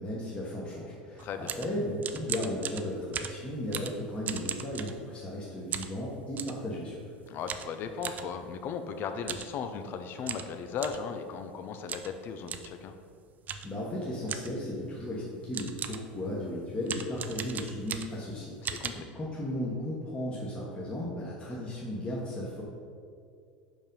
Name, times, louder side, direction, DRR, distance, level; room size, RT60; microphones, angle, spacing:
voice 1, 0.0-7.0 13.6-22.6, left 1 dB, 20° left, -6 dB, 1.5 m, -35 dB
voice 2, 1.2-1.5 7.3-12.9 18.6-19.1, left 6 dB, 45° left, 8 dB, 0.7 m, -37 dB
sound 1, 1.2-5.4 5.7-6.6 7.5-8.3 9.2-9.5 9.8-9.9 10.2-11.1 11.9-12.2 12.5-12.7 13.5-13.8 14.3-14.6 15.2-15.3 15.5-16.1 16.8-18.3 18.6-18.9, right 8 dB, 35° right, 0.5 m, -37 dB
5.2 x 5.0 x 5.5 m, 2.3 s
hypercardioid pair, 95°, 5 cm